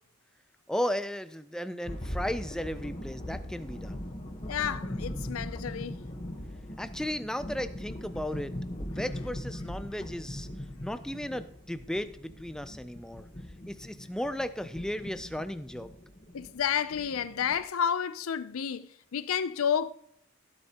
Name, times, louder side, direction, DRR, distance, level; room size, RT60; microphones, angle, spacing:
voice 1, 0.7-4.1 6.8-8.5 8.8-10.5 10.8-13.3 13.7-15.9, equal, 5° left, 0.3 m, -35 dB
sound 1, 1.8-17.6, left 1 dB, 30° left, 1.1 m, -40 dB
voice 2, 4.5-6.0 16.3-19.9, left 8 dB, 90° left, 0.5 m, -30 dB
15.5 x 7.7 x 2.9 m
head